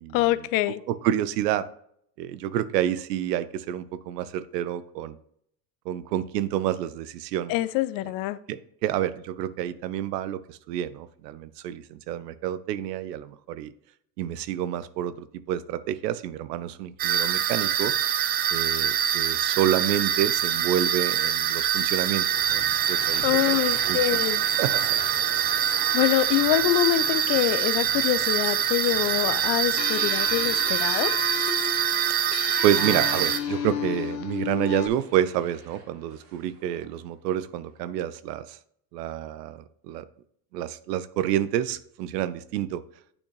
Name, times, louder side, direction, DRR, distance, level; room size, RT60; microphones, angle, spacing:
voice 1, 0.1-0.8 7.5-8.4 23.2-24.4 25.7-31.1, left 15 dB, 45° left, 16 dB, 0.4 m, -25 dB
voice 2, 0.9-1.6 2.2-5.2 5.9-7.6 8.5-13.7 14.2-17.9 18.5-23.2 23.5-24.0 24.6-24.9 32.6-38.6 38.9-40.0 40.5-42.8, right 11 dB, 75° right, 15 dB, 0.7 m, -28 dB
sound 1, 17.0-33.4, right 9 dB, 25° right, 0.3 m, -25 dB
sound 2, 22.2-37.2, right 3 dB, 50° right, 2.3 m, -44 dB
sound 3, 29.8-34.9, left 9 dB, 85° left, 0.8 m, -33 dB
8.8 x 4.2 x 3.2 m, 0.67 s
hypercardioid pair, 85°, 49 cm